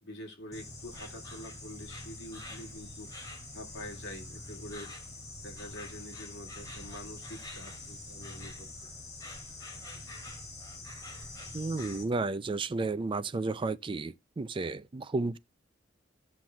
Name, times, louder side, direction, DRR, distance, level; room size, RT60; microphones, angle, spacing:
voice 1, 0.0-3.1 3.5-4.9 5.4-8.7, left 1 dB, 65° left, 2.3 m, -46 dB
Insect, 0.5-12.0, left 2 dB, 20° left, 2.5 m, -45 dB
voice 2, 11.5-15.4, right 3 dB, 25° right, 0.4 m, -32 dB
15.0 x 5.9 x 2.3 m
head